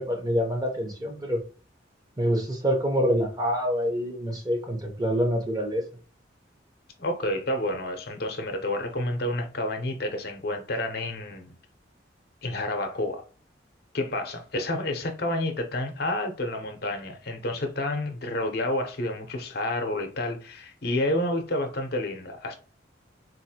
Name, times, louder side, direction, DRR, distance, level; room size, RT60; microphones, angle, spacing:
voice 1, 0.0-1.4 2.2-5.8, equal, 20° right, 0.8 m, -26 dB
voice 2, 7.0-11.5 12.4-13.2 13.9-22.6, left 1 dB, 55° left, 0.7 m, -29 dB
4.0 x 2.6 x 2.8 m
head